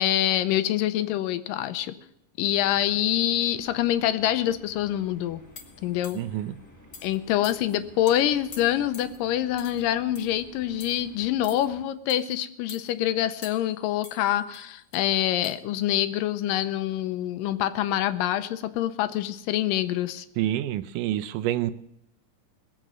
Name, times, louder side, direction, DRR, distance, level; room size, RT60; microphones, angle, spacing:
voice 1, 0.0-1.9 2.4-5.4 5.8-6.2 7.0-20.3, left 12 dB, 85° left, 12 dB, 2.5 m, -26 dB
sound 1, 2.5-11.9, left 1 dB, 10° left, 0.8 m, -52 dB
sound 2, 5.5-6.4 6.9-7.2 7.4-7.8 8.1-8.2 8.5-9.2 9.6-9.8 10.1-10.4 10.8-11.0 11.4-11.7 12.1-12.3 12.7-12.9 13.4-13.8 14.0-15.0 15.4-15.5, left 4 dB, 40° left, 1.5 m, -46 dB
voice 2, 6.1-6.6 20.4-21.7, right 13 dB, 80° right, 13 dB, 2.2 m, -27 dB
20.5 x 7.9 x 6.3 m, 0.78 s
omnidirectional pair, 3.8 m